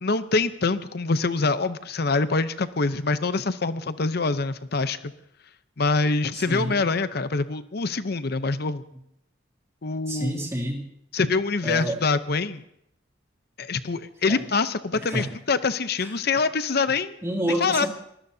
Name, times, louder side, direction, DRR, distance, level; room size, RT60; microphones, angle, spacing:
voice 1, 0.0-5.1 5.8-8.8 9.8-10.4 11.1-12.6 13.6-17.1 17.6-17.9, left 3 dB, 55° left, 12 dB, 0.7 m, -25 dB
voice 2, 6.3-6.8 8.9-9.0 10.1-10.9 11.6-12.0 14.3-14.4 14.9-15.3 16.0-16.1 17.2-17.9, right 1 dB, 15° right, -3 dB, 2.7 m, -29 dB
26.5 x 19.5 x 2.8 m, 0.76 s
head